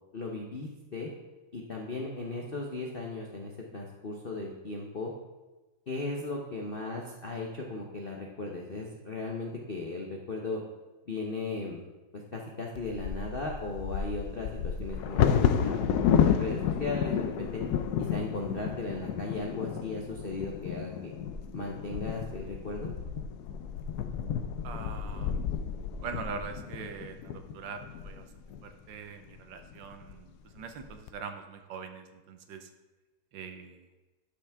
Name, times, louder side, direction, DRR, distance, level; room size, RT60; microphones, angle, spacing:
voice 1, 0.1-1.1 1.5-5.1 5.9-10.6 11.1-11.8 12.1-17.6 18.0-21.1 21.5-22.9, left 3 dB, 55° left, -1 dB, 0.6 m, -37 dB
Bird vocalization bird call bird song / Wind / Thunder, 12.8-28.6 29.3-29.4 29.7-30.1 30.6-31.1, left 8 dB, 70° left, 0.9 m, -31 dB
voice 2, 24.6-25.4 26.0-28.3 28.6-32.7 33.3-33.9, right 6 dB, 70° right, 7 dB, 1.4 m, -42 dB
11.5 x 5.8 x 3.5 m, 1.2 s
omnidirectional pair, 2.2 m